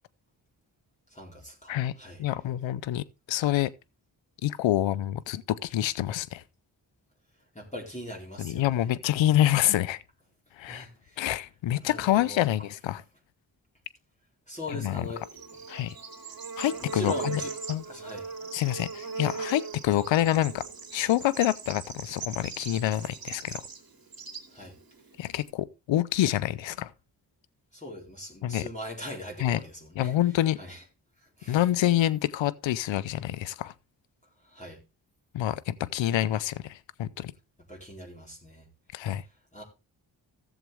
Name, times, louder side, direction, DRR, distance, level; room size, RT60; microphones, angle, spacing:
voice 1, 1.1-2.2 7.5-8.9 9.2-9.4 10.7-11.3 11.8-12.5 14.5-15.2 16.8-17.5 17.9-18.3 24.5-24.8 27.7-30.1 30.6-30.8 31.4-31.6 34.4-34.8 37.7-38.7 39.5-39.6, left 1 dB, 15° left, 4.2 m, -41 dB
voice 2, 2.2-3.7 4.4-6.4 8.4-10.0 10.6-10.9 11.2-13.0 14.7-15.1 15.7-15.9 16.6-17.4 17.7-17.8 18.5-20.7 20.9-23.6 25.2-26.9 28.4-28.7 29.4-29.6 30.0-30.6 31.5-33.7 35.3-37.3 38.9-39.2, left 13 dB, 85° left, 0.6 m, -27 dB
Bird / Insect, 14.9-25.5, right 5 dB, 50° right, 2.6 m, -39 dB
14.5 x 7.4 x 3.4 m
supercardioid pair, 45°, 45 cm